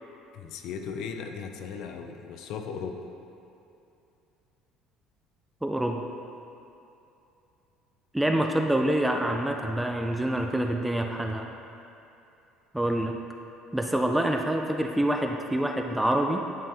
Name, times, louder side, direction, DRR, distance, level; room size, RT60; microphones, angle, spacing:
voice 1, 0.3-3.0, left 6 dB, 60° left, 5 dB, 0.5 m, -37 dB
voice 2, 5.6-6.0 8.1-11.5 12.7-13.2 13.7-16.4, right 1 dB, 5° right, 3 dB, 0.3 m, -26 dB
11.0 x 4.4 x 3.4 m, 2.8 s
cardioid pair, 155°, 0 cm